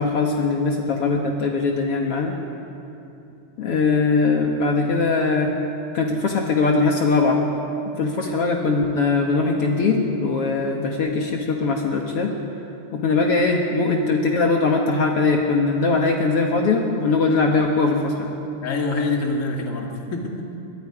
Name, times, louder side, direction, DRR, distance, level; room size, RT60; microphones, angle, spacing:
voice 1, 0.0-2.3 3.6-5.5 5.9-7.4 8.0-12.3 12.9-18.3, left 3 dB, 85° left, 1 dB, 1.3 m, -21 dB
voice 2, 18.6-20.5, left 3 dB, 35° left, 0 dB, 1.4 m, -26 dB
26.5 x 22.5 x 4.9 m, 2.8 s
omnidirectional pair, 4.9 m